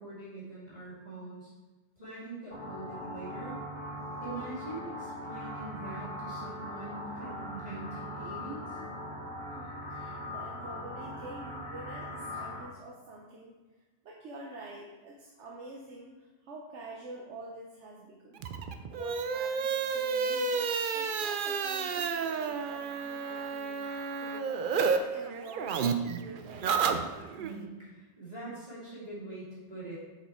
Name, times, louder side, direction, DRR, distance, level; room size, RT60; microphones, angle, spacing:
voice 1, 0.0-1.5 2.0-3.6 4.2-8.8 27.4-30.0, right 2 dB, 35° right, -9 dB, 2.7 m, -43 dB
sound 1, 2.5-12.6, left 1 dB, 55° left, 2.3 m, -40 dB
voice 2, 9.6-13.6 14.0-18.5 18.7-20.6 20.9-23.8 24.2-26.8, right 2 dB, 75° right, -2 dB, 1.1 m, -47 dB
sound 2, 18.4-25.0 25.3-27.5, right 5 dB, 60° right, 0.6 m, -31 dB
6.7 x 5.1 x 4.3 m, 1.2 s
omnidirectional pair, 1.2 m